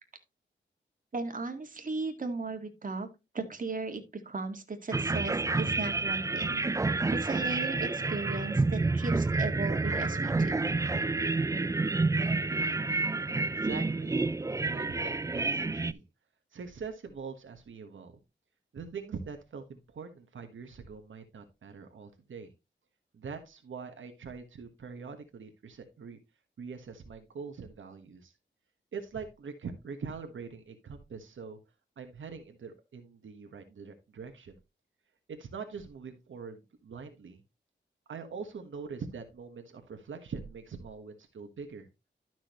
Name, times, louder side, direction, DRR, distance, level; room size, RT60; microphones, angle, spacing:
voice 1, 1.1-3.1 3.3-6.6 7.1-10.7, right 3 dB, 45° right, 5 dB, 1.9 m, -36 dB
sound 1, 4.9-15.9, right 3 dB, 15° right, 0.4 m, -29 dB
voice 2, 13.4-14.2 14.6-16.0 16.5-18.2 18.7-22.5 23.1-26.2 26.6-28.3 28.9-31.6 32.0-34.6 35.3-37.4 38.1-41.9, right 5 dB, 80° right, 5 dB, 1.4 m, -43 dB
12.0 x 6.2 x 3.1 m, 0.26 s
wide cardioid pair, 95°, 20 cm